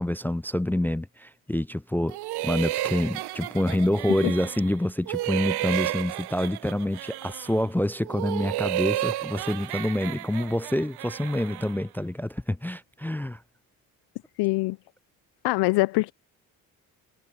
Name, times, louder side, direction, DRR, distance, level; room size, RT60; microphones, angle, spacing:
voice 1, 0.0-2.2 2.4-13.4, left 1 dB, 5° left, 0.4 m, -27 dB
sound 1, 2.1-4.7 5.1-7.6 8.0-11.8, right 15 dB, 75° right, 1.0 m, -32 dB
voice 2, 14.4-14.8 15.4-16.1, left 22 dB, 80° left, 0.6 m, -23 dB
supercardioid pair, 60°, 39 cm